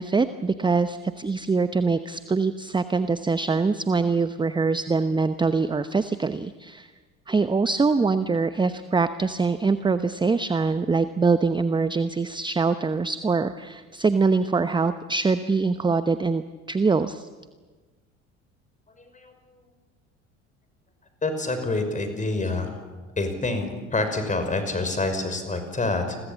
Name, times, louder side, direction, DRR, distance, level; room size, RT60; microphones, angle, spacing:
voice 1, 0.0-6.9 7.3-17.3, right 4 dB, 10° right, 12 dB, 0.9 m, -24 dB
voice 2, 21.2-22.8 23.2-26.2, left 2 dB, 20° left, 7 dB, 5.9 m, -27 dB
30.0 x 22.0 x 7.3 m, 1.4 s
figure-of-eight pair, 65°, 40 cm